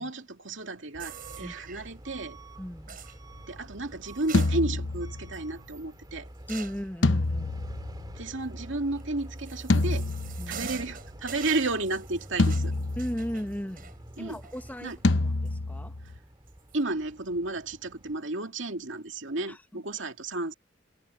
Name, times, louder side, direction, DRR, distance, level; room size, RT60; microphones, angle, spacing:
voice 1, 0.0-2.4 3.5-6.3 8.2-10.1 10.5-12.7 14.2-14.4 14.8-15.0 16.7-20.5, right 2 dB, 70° right, 2.4 m, -32 dB
Truck / Alarm, 0.9-18.2, right 1 dB, 20° right, 2.4 m, -47 dB
sound 1, 1.0-1.9 2.9-3.2 4.1-5.0 5.3-5.4 6.5-6.9 9.0-15.1 15.5-15.6 16.5-16.8, right 7 dB, 50° right, 6.0 m, -44 dB
voice 2, 2.6-3.0 6.5-7.6 10.4-10.7 12.9-13.9 14.2-16.0 19.5-19.8, equal, 10° left, 1.7 m, -36 dB
sound 2, 4.3-5.5 7.0-8.6 9.7-10.9 12.4-13.6 15.0-16.2, left 2 dB, 70° left, 0.9 m, -27 dB
head